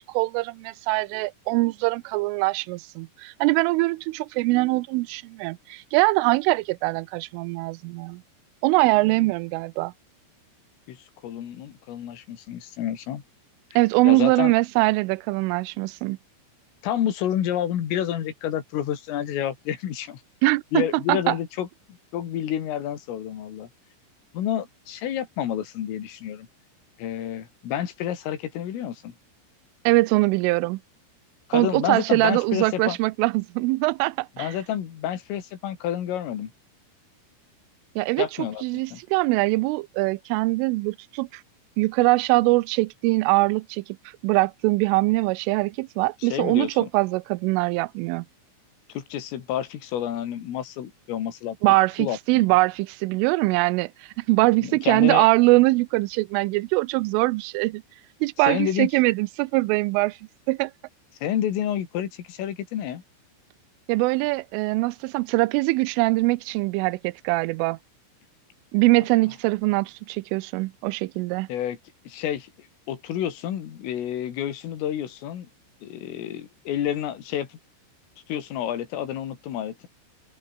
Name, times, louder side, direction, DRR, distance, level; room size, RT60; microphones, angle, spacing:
voice 1, 0.1-8.2 8.6-9.9 13.8-16.2 20.4-21.4 29.9-30.8 31.5-34.5 38.0-38.3 38.6-41.4 41.8-43.8 44.2-48.3 51.6-53.9 54.2-57.8 58.2-60.2 60.5-60.7 63.9-67.8 68.7-71.5, right 23 dB, 85° right, 3.2 m, -22 dB
voice 2, 11.2-13.2 14.1-14.5 16.8-20.2 20.7-21.7 22.1-23.7 24.3-26.5 27.0-29.2 31.5-33.0 34.4-36.5 38.2-38.6 38.9-39.0 46.2-46.9 49.0-52.5 54.6-55.3 58.4-58.9 61.2-63.0 71.5-71.8 72.1-75.5 75.8-77.6 78.3-79.9, left 10 dB, 80° left, 5.5 m, -29 dB
open air
omnidirectional pair, 5.8 m